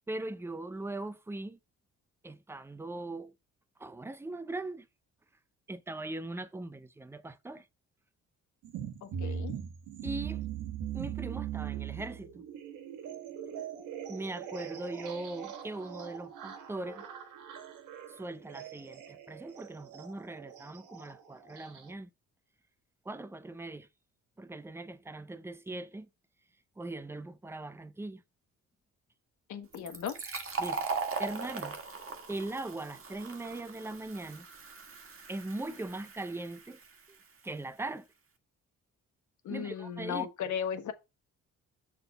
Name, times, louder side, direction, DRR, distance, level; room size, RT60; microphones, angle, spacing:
voice 1, 0.1-1.6 2.2-3.3 3.8-4.9 5.7-7.7 9.2-9.3 10.0-10.4 10.9-12.4 14.1-17.0 18.1-22.1 23.1-23.9 24.4-26.1 26.8-28.2 30.6-30.9 31.2-31.8 32.3-34.5 35.3-36.8 37.4-38.1 39.5-40.3, right 2 dB, 10° right, 0.6 m, -40 dB
sound 1, 8.6-21.9, right 9 dB, 85° right, 1.4 m, -41 dB
voice 2, 9.0-9.5 29.5-30.1 39.4-40.9, left 8 dB, 75° left, 1.3 m, -36 dB
Fill (with liquid), 29.7-37.1, right 4 dB, 45° right, 1.5 m, -39 dB
6.8 x 3.7 x 5.4 m
cardioid pair, 90°, 30 cm